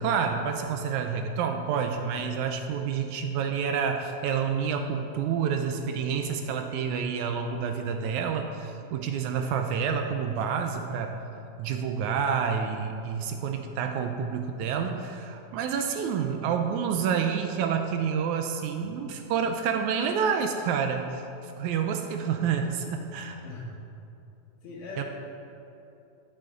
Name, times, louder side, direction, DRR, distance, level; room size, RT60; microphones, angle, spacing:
voice 1, 0.0-11.2 11.6-23.4 25.0-25.1, right 6 dB, 80° right, 5 dB, 1.8 m, -28 dB
voice 2, 24.6-25.0, left 2 dB, 65° left, -4 dB, 2.8 m, -39 dB
12.5 x 7.6 x 3.7 m, 2.7 s
omnidirectional pair, 3.6 m